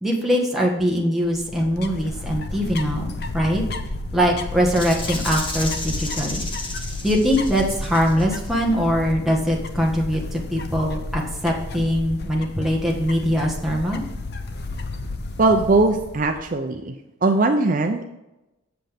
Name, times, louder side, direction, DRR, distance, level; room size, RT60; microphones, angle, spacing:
voice 1, 0.0-3.6 4.1-6.4 7.0-14.0, equal, ahead, -2 dB, 1.4 m, -22 dB
sound 1, 1.3-16.5, left 2 dB, 50° left, 0.7 m, -32 dB
Rattle (instrument), 4.7-8.5, left 2 dB, 25° left, 1.3 m, -33 dB
voice 2, 15.4-16.9 17.2-18.0, right 3 dB, 40° right, 5 dB, 0.5 m, -19 dB
7.9 x 7.7 x 3.5 m, 0.97 s
head